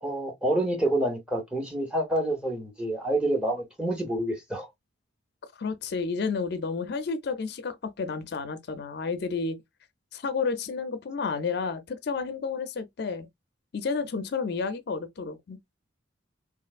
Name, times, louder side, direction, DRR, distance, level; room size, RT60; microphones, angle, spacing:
voice 1, 0.0-4.7, right 1 dB, 5° right, 0.6 m, -28 dB
voice 2, 5.6-9.6 10.1-13.3 13.7-15.6, left 5 dB, 50° left, 0.4 m, -31 dB
3.2 x 2.6 x 2.3 m
head